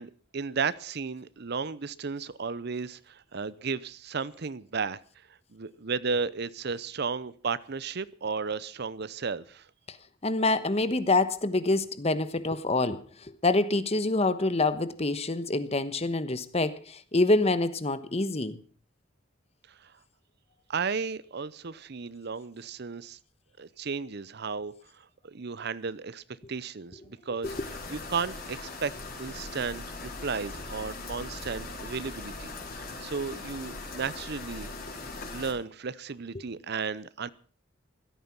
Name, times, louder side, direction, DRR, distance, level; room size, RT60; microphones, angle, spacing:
voice 1, 0.0-5.0 5.5-9.7 19.7-19.9 20.7-23.2 23.6-26.2 26.5-27.5 27.9-28.9 29.2-34.7 35.3-37.3, right 5 dB, 55° right, 18 dB, 0.7 m, -34 dB
voice 2, 10.2-13.0 13.4-18.6 27.4-27.6, left 2 dB, 30° left, 13 dB, 1.2 m, -26 dB
sound 1, 27.4-35.5, left 3 dB, 50° left, 4.4 m, -40 dB
16.0 x 13.5 x 5.9 m, 0.42 s
head